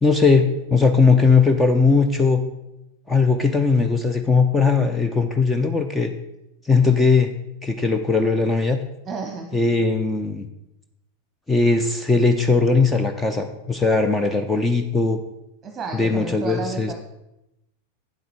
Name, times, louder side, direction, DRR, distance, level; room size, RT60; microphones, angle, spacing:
voice 1, 0.0-2.4 3.1-6.1 6.7-7.3 7.6-8.8 9.5-10.5 11.5-15.2 15.9-16.9, left 4 dB, 10° left, 6 dB, 0.7 m, -19 dB
voice 2, 9.0-9.6 15.6-16.9, right 3 dB, 20° right, 4 dB, 1.1 m, -31 dB
8.9 x 8.0 x 4.7 m, 0.89 s
figure-of-eight pair, 90°, 0 cm